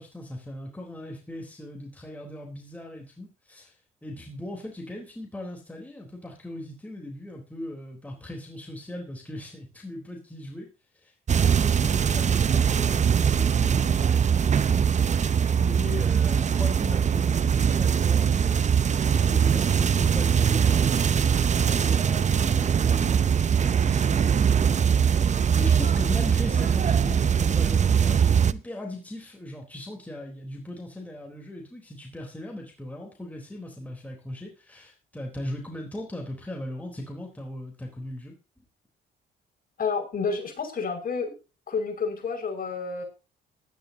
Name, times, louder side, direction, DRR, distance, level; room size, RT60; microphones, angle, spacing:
voice 1, 0.0-3.7 4.0-10.7 11.0-11.1 11.4-18.6 19.1-38.3, left 1 dB, 5° left, 0 dB, 3.7 m, -39 dB
sound 1, 11.3-28.5, right 7 dB, 35° right, 0.7 m, -22 dB
voice 2, 39.8-41.3 41.7-43.0, left 5 dB, 45° left, 2 dB, 5.6 m, -29 dB
18.0 x 12.0 x 2.8 m, 0.30 s
cardioid pair, 90°, 20 cm